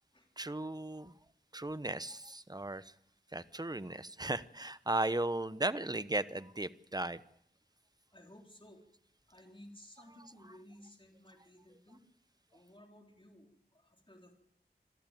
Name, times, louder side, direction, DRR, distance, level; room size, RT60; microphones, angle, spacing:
voice 1, 0.4-1.1 1.5-2.9 3.3-7.2, right 2 dB, 25° right, 14 dB, 0.9 m, -36 dB
voice 2, 8.1-8.8 9.3-12.0 12.5-14.3, left 1 dB, 30° left, 2 dB, 3.8 m, -57 dB
26.5 x 13.0 x 9.1 m, 0.74 s
wide cardioid pair, 45°, 17 cm